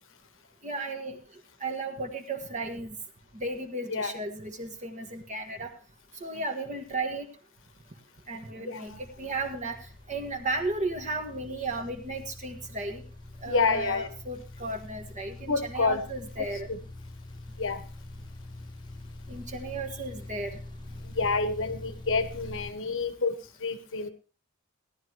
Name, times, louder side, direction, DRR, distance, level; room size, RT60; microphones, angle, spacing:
voice 1, 0.6-1.2 1.6-2.9 3.3-5.7 6.2-7.3 8.3-8.9 9.2-9.8 10.1-13.0 13.4-16.7 19.3-20.6, right 2 dB, 35° right, 3 dB, 1.5 m, -34 dB
voice 2, 8.7-9.0 13.5-14.1 15.5-16.0 16.4-16.8 17.6-17.8 21.0-24.1, left 4 dB, 60° left, 10 dB, 1.1 m, -29 dB
sound 1, 8.8-22.7, left 2 dB, 20° left, 1.1 m, -45 dB
17.5 x 11.0 x 3.0 m, 0.36 s
head